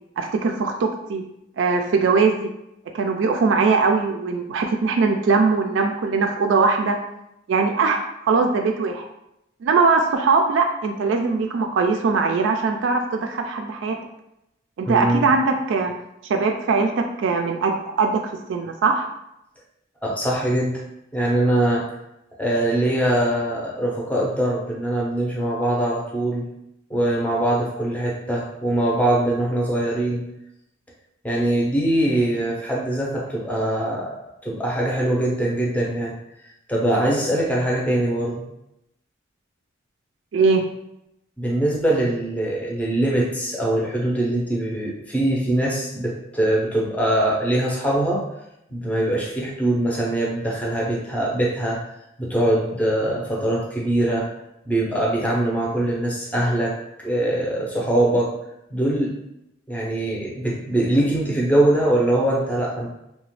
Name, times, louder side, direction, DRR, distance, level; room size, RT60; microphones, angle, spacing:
voice 1, 0.2-1.2 1.6-2.5 2.9-7.0 7.5-9.1 9.6-14.0 14.8-15.9 16.3-18.2 18.5-19.1 40.3-40.7, right 4 dB, 75° right, 4 dB, 0.3 m, -21 dB
voice 2, 14.9-15.3 20.0-20.8 21.1-21.9 22.4-26.4 26.9-30.2 31.2-34.2 34.4-36.1 36.7-38.5 41.4-48.2 48.7-51.8 52.2-54.3 54.7-58.3 58.7-59.2 59.7-62.9, right 1 dB, 5° left, -3 dB, 0.5 m, -22 dB
2.9 x 2.1 x 3.0 m, 0.84 s
head